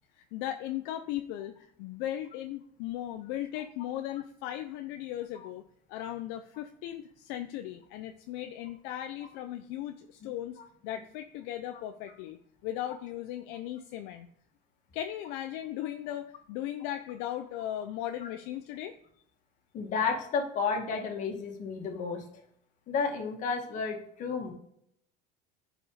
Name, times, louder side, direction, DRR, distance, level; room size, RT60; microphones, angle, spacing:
voice 1, 0.2-5.6 5.9-10.6 10.8-12.4 12.6-14.3 14.9-18.9, left 12 dB, 65° left, 7 dB, 0.7 m, -37 dB
voice 2, 19.7-22.2 22.9-24.5, left 5 dB, 40° left, 3 dB, 2.1 m, -31 dB
9.9 x 5.1 x 4.9 m, 0.69 s
cardioid pair, 150°, 19 cm